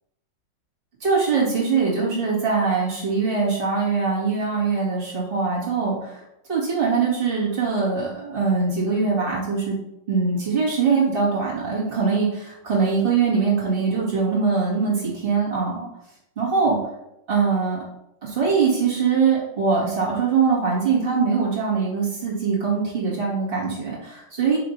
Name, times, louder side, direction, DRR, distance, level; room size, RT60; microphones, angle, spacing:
voice 1, 1.0-6.2 6.5-9.8 10.1-15.9 16.4-16.8 17.3-17.8 18.2-24.6, right 5 dB, 30° right, -6 dB, 2.4 m, -22 dB
5.7 x 3.4 x 5.3 m, 0.85 s
omnidirectional pair, 1.9 m